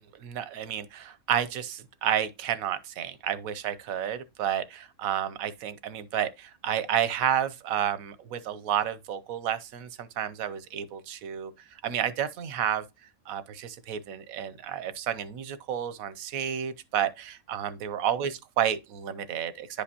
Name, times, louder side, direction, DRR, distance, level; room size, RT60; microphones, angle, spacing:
voice 1, 0.2-12.8 13.3-19.8, right 9 dB, 85° right, 1.1 m, -31 dB
10.0 x 5.1 x 2.7 m
omnidirectional pair, 1.4 m